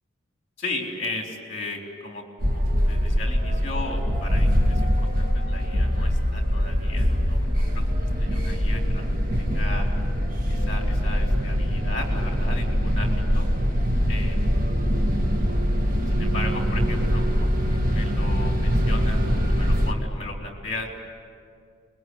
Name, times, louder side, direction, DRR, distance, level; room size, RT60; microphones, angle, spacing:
voice 1, 0.6-7.8 8.2-9.9 10.5-13.5 14.1-14.5 16.1-20.9, left 2 dB, 35° left, 1 dB, 4.0 m, -36 dB
sound 1, 2.4-19.9, equal, 45° right, 2.2 m, -23 dB
26.0 x 22.5 x 9.6 m, 2.2 s
head